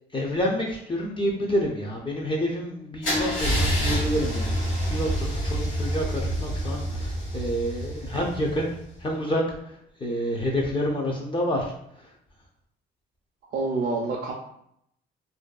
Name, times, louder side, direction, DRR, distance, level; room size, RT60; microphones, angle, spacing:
voice 1, 0.1-8.7 9.0-12.1, equal, 25° left, -1 dB, 0.5 m, -28 dB
Car / Engine starting / Idling, 3.0-8.9, equal, 80° left, 1.3 m, -27 dB
voice 2, 13.5-14.3, right 3 dB, 50° right, 0 dB, 0.4 m, -28 dB
2.5 x 2.2 x 2.3 m, 0.73 s
cardioid pair, 90°, 20 cm